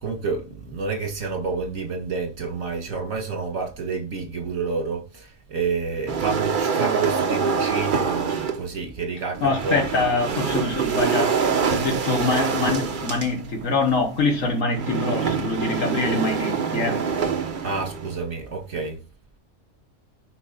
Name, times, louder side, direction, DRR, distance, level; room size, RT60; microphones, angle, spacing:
voice 1, 0.0-9.8 17.6-19.0, right 4 dB, 75° right, 2.3 m, -29 dB
sound 1, 6.1-8.7 9.3-18.2, right 6 dB, 45° right, 0.9 m, -25 dB
voice 2, 9.4-17.0, left 3 dB, 70° left, 1.7 m, -24 dB
10.5 x 4.4 x 4.0 m
omnidirectional pair, 1.4 m